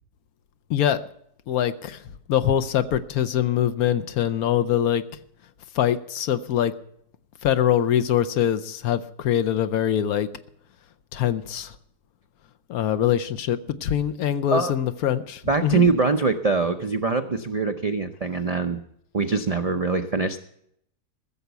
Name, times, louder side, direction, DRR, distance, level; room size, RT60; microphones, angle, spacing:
voice 1, 0.7-1.0 1.5-2.0 2.3-5.0 5.8-6.7 7.4-10.3 11.1-11.7 12.7-15.9, left 10 dB, 70° left, 10 dB, 1.1 m, -23 dB
voice 2, 15.5-18.8 19.1-20.4, right 4 dB, 65° right, 7 dB, 0.3 m, -23 dB
15.0 x 7.1 x 8.0 m, 0.72 s
omnidirectional pair, 1.7 m